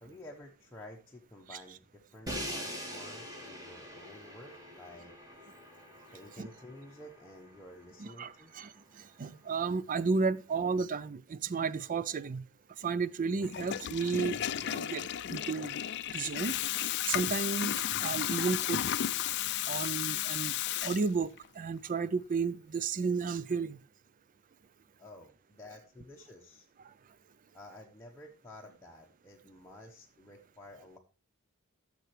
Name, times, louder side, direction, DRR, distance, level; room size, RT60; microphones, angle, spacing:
voice 1, 0.0-5.1 6.1-8.5 25.0-26.7 27.5-31.0, left 1 dB, 10° left, 1.0 m, -51 dB
Crash cymbal, 2.3-8.2, equal, 15° right, 1.8 m, -44 dB
voice 2, 8.0-8.7 9.2-12.5 12.8-14.4 14.6-15.8 16.1-16.6 17.1-18.8 19.7-20.5 20.8-23.8, right 4 dB, 40° right, 0.4 m, -33 dB
sound 1, 12.5-19.5, equal, 70° right, 4.4 m, -66 dB
Water tap faucet / Toilet flush, 13.4-21.5, left 11 dB, 50° left, 0.4 m, -33 dB
14.5 x 6.8 x 3.2 m
head